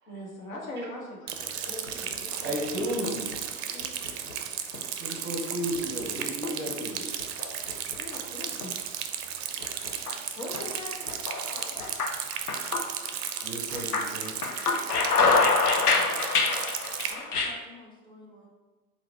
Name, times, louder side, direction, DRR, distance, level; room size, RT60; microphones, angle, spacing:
voice 1, 0.1-2.9 3.7-3.9 8.0-8.8 10.4-11.9 14.6-16.4, left 1 dB, 65° left, -1 dB, 1.1 m, -42 dB
Rain, 1.3-17.1, right 8 dB, 50° right, 0.4 m, -35 dB
sound 1, 1.7-2.4 2.8-3.4 3.8-4.4 4.7-4.8 5.7-6.8 7.2-8.2 8.6-8.7 9.6-10.1 10.5-10.7 11.1-13.4 13.7-17.5, left 4 dB, 85° left, 0.6 m, -27 dB
voice 2, 2.4-3.3 5.0-7.0 13.4-14.3, equal, 25° right, -2 dB, 0.7 m, -33 dB
voice 3, 14.2-14.6 17.0-18.5, left 2 dB, 10° left, -3 dB, 0.9 m, -51 dB
3.8 x 2.3 x 4.4 m, 1.2 s
figure-of-eight pair, 80°, 44 cm